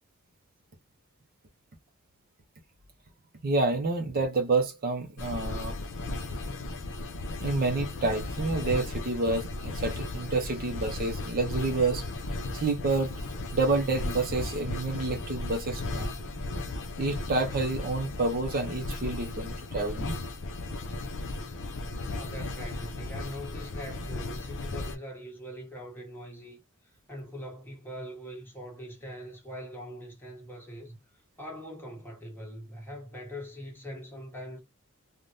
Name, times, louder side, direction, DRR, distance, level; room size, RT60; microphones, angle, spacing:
voice 1, 3.4-5.8 7.4-12.1 12.5-13.2 13.5-16.1 17.0-20.2, right 3 dB, 45° right, 0.5 m, -29 dB
sound 1, 5.2-24.9, left 2 dB, 65° left, 0.5 m, -35 dB
voice 2, 22.0-31.0 31.4-34.6, equal, 10° left, 1.1 m, -42 dB
3.3 x 2.1 x 2.5 m
head